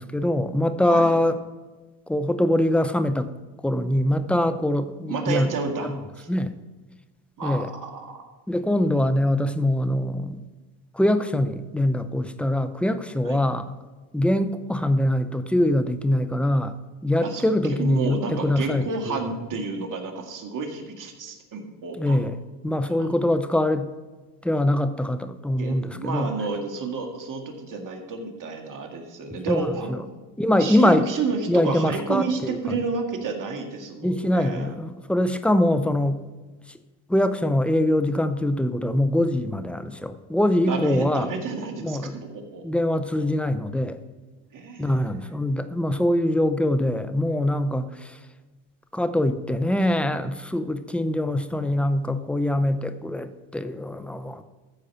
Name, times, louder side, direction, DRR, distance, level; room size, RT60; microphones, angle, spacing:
voice 1, 0.0-1.4 2.1-3.3 3.6-5.5 5.8-6.0 6.3-6.5 7.4-7.7 8.5-10.4 10.9-13.8 14.1-16.7 17.0-19.1 22.0-22.4 22.6-23.9 24.4-26.3 29.5-30.0 30.4-31.0 31.5-32.8 34.0-36.2 37.1-41.3 41.8-42.2 42.6-44.0 44.8-48.2 48.9-54.4, left 1 dB, 5° left, 10 dB, 0.6 m, -23 dB
voice 2, 0.9-1.2 5.1-5.9 6.2-6.3 7.4-8.3 13.3-13.5 17.2-22.2 22.9-23.1 25.6-30.0 30.6-34.7 40.7-42.8 43.1-43.2 44.5-45.2, right 4 dB, 45° right, 3 dB, 2.0 m, -31 dB
14.0 x 4.8 x 5.6 m, 1.3 s
supercardioid pair, 90°, 45 cm